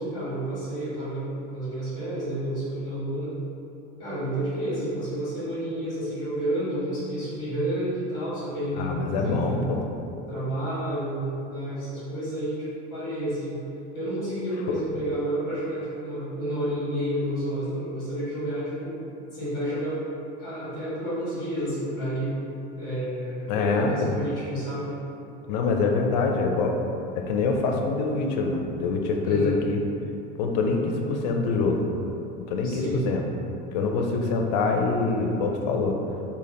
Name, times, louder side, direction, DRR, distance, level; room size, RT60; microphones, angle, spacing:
voice 1, 0.0-3.3 4.0-9.6 10.3-13.6 13.9-19.0 19.3-20.0 20.4-22.3 22.8-24.9 29.2-29.6 32.6-33.0, right 1 dB, 15° left, -14 dB, 1.3 m, -30 dB
voice 2, 8.8-9.8 14.7-14.8 23.5-23.9 25.5-26.8 27.1-29.8 30.4-31.8 32.4-33.2 33.7-36.0, left 4 dB, 85° left, 2 dB, 0.5 m, -25 dB
3.4 x 2.4 x 3.7 m, 2.8 s
cardioid pair, 155°, 21 cm